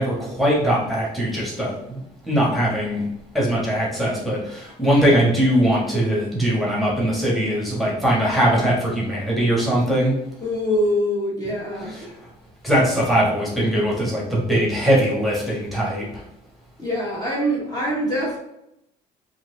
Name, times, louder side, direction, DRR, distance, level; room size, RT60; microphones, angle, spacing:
voice 1, 0.0-2.0 2.2-3.0 3.3-10.1 11.9-12.1 12.6-16.2, equal, ahead, -5 dB, 1.5 m, -21 dB
voice 2, 10.4-12.0 16.8-18.4, equal, 25° left, -5 dB, 1.4 m, -24 dB
4.5 x 2.7 x 3.9 m, 0.83 s
cardioid pair, 110°, 17 cm